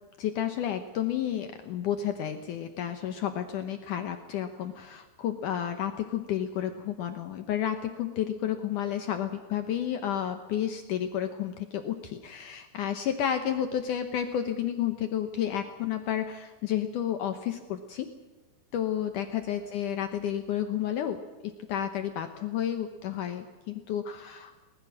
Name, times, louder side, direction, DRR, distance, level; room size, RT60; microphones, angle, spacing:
voice 1, 0.2-18.1 18.7-24.6, left 10 dB, 90° left, 7 dB, 1.7 m, -31 dB
21.0 x 19.5 x 6.3 m, 1.3 s
omnidirectional pair, 5.1 m